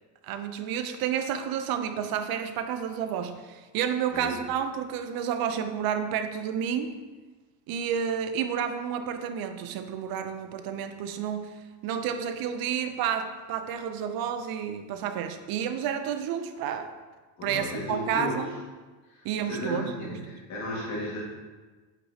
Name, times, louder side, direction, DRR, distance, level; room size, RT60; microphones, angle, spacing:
voice 1, 0.2-7.0 7.7-16.9 17.4-18.5 19.2-20.4, right 8 dB, 50° right, 8 dB, 0.6 m, -30 dB
voice 2, 17.4-18.4 19.1-21.2, left 1 dB, 35° left, -5 dB, 1.8 m, -34 dB
8.2 x 5.8 x 2.8 m, 1.3 s
cardioid pair, 165°, 47 cm